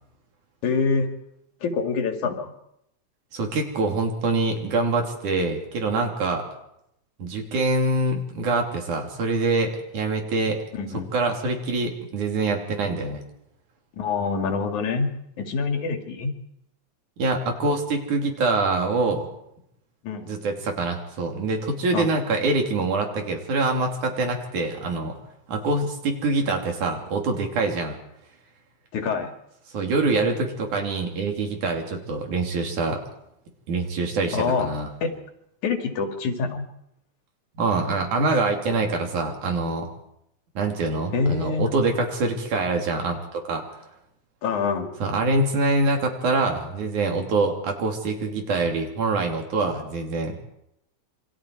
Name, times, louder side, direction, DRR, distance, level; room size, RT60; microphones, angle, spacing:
voice 1, 0.6-1.1 1.6-2.5 10.7-11.1 13.9-15.1 15.4-16.3 20.0-20.4 21.9-22.1 28.9-29.3 34.3-34.7 35.0-35.1 35.6-36.7 41.1-41.7 44.4-45.0, left 5 dB, 80° left, 5 dB, 3.6 m, -25 dB
voice 2, 3.3-6.4 7.2-10.6 11.1-13.2 17.2-19.3 20.3-25.2 25.5-28.0 29.7-33.0 33.7-34.9 37.6-39.9 40.6-43.6 45.0-50.4, right 3 dB, 85° right, 2 dB, 4.5 m, -25 dB
27.5 x 24.0 x 4.7 m, 0.79 s
omnidirectional pair, 3.4 m